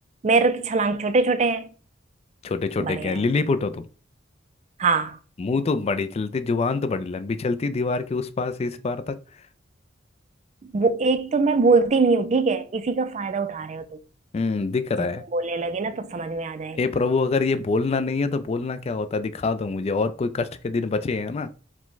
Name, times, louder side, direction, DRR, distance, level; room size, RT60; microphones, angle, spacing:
voice 1, 0.2-1.7 2.8-3.2 4.8-5.2 10.7-14.0 15.0-16.8, right 4 dB, 35° right, 0.4 m, -23 dB
voice 2, 2.4-3.8 5.4-9.2 14.3-15.2 16.8-21.5, left 3 dB, 35° left, 0.3 m, -25 dB
4.8 x 2.2 x 3.8 m
head